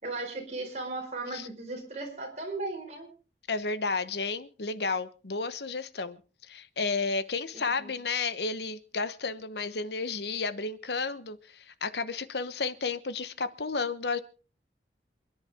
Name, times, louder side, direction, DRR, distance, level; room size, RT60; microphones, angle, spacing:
voice 1, 0.0-3.1 7.5-7.9, right 2 dB, 40° right, 1 dB, 4.8 m, -37 dB
voice 2, 3.5-6.2 6.4-14.2, left 4 dB, 75° left, 13 dB, 1.1 m, -32 dB
28.0 x 10.5 x 3.6 m, 0.35 s
head